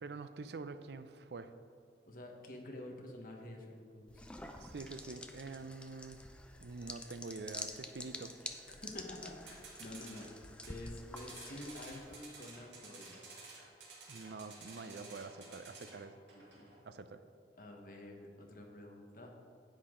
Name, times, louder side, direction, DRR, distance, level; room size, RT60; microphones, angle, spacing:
voice 1, 0.0-1.5 4.6-6.2 6.6-8.3 14.1-16.1 16.8-17.2, right 3 dB, 70° right, 10 dB, 0.5 m, -46 dB
voice 2, 2.1-4.2 8.7-10.3 10.7-13.2 16.2-16.7 17.5-19.3, left 1 dB, 50° left, 1 dB, 1.2 m, -49 dB
sound 1, 4.1-12.2, left 1 dB, 5° left, 0.4 m, -49 dB
sound 2, 4.8-5.3 9.5-10.8 11.1-16.9, right 3 dB, 85° right, 1.9 m, -53 dB
10.0 x 8.3 x 3.8 m, 2.2 s
head